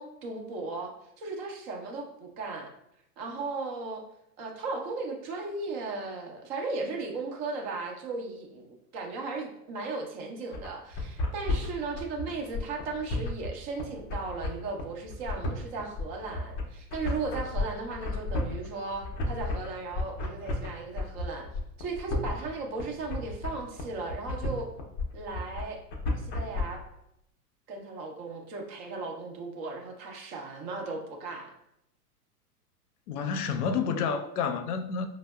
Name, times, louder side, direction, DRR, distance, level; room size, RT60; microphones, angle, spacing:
voice 1, 0.0-2.7 3.2-4.0 4.4-21.5 21.8-24.7 25.1-25.8 26.1-26.8 27.7-31.5, right 3 dB, 35° right, 0.7 m, -36 dB
sound 1, 10.5-26.6, left 2 dB, 25° left, 0.5 m, -33 dB
voice 2, 33.1-35.1, left 6 dB, 75° left, 0.5 m, -29 dB
5.0 x 2.0 x 2.2 m
hypercardioid pair, 105°, 46 cm